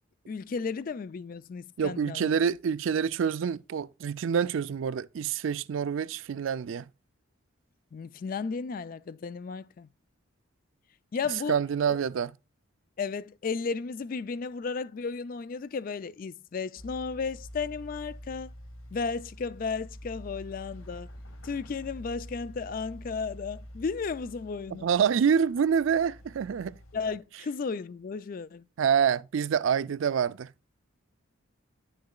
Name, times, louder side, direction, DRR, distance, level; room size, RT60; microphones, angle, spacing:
voice 1, 0.3-2.3 7.9-9.9 11.1-11.6 11.9-12.0 13.0-18.5 18.9-21.1 21.4-24.9 26.9-28.6, left 5 dB, 45° left, 0.3 m, -34 dB
voice 2, 1.8-6.9 11.5-12.3 24.7-26.8 28.8-30.5, right 7 dB, 70° right, 0.4 m, -27 dB
sound 1, 16.8-27.2, equal, 85° left, 1.6 m, -47 dB
10.5 x 6.6 x 2.3 m
head